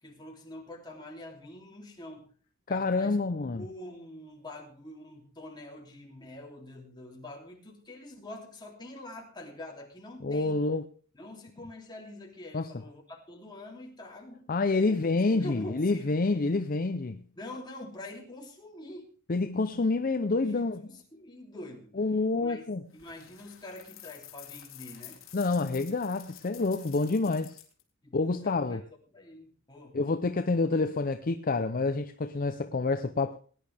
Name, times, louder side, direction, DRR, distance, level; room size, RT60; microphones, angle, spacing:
voice 1, 0.0-2.3 2.7-3.2 3.5-10.6 11.1-14.5 14.9-15.0 15.3-16.2 17.4-19.1 20.4-21.9 22.4-22.6 22.9-25.2 28.0-28.8 29.1-30.0, left 1 dB, 20° left, 2.9 m, -45 dB
voice 2, 2.7-3.6 10.2-10.9 12.5-12.7 14.5-17.2 19.3-20.8 22.0-22.8 25.3-27.6 28.1-28.8 29.9-33.4, left 3 dB, 40° left, 0.6 m, -28 dB
sound 1, 22.9-27.8, left 11 dB, 65° left, 2.5 m, -50 dB
19.5 x 10.5 x 3.4 m
head